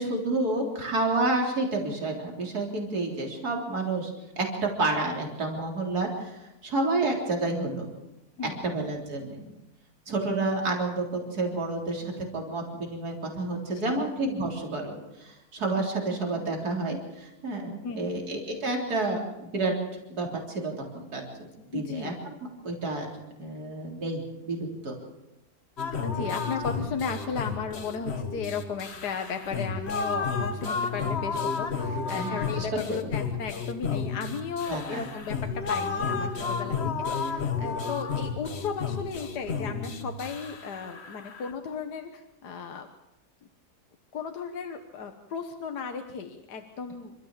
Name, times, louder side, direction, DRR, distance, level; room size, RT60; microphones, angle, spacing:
voice 1, 0.0-7.9 8.6-9.5 10.1-19.7 20.1-22.3 22.6-23.1 23.4-24.9 32.1-33.1 34.7-35.1, right 2 dB, 65° right, 0 dB, 4.2 m, -30 dB
voice 2, 8.4-8.8 13.7-14.1 17.8-18.2 21.7-22.1 26.0-35.4 35.7-42.9 44.1-47.1, left 6 dB, 75° left, 5 dB, 1.8 m, -35 dB
sound 1, 25.8-41.5, left 5 dB, 40° left, 1.5 m, -32 dB
27.5 x 14.0 x 7.4 m, 0.96 s
omnidirectional pair, 1.7 m